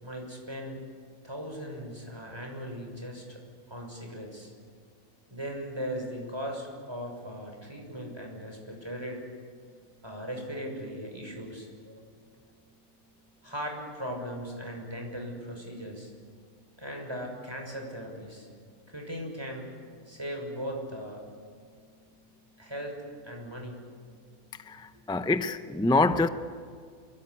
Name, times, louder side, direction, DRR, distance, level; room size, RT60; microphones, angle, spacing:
voice 1, 0.0-0.8 1.2-3.4 3.7-4.5 5.3-9.2 10.0-12.0 13.4-16.1 16.8-18.5 18.9-19.7 20.1-21.3 22.6-23.0 23.2-23.8 26.1-26.2, equal, 15° right, 6.2 m, -38 dB
voice 2, 24.7-26.3, left 2 dB, 5° left, 0.5 m, -25 dB
27.0 x 22.5 x 9.7 m
omnidirectional pair, 1.5 m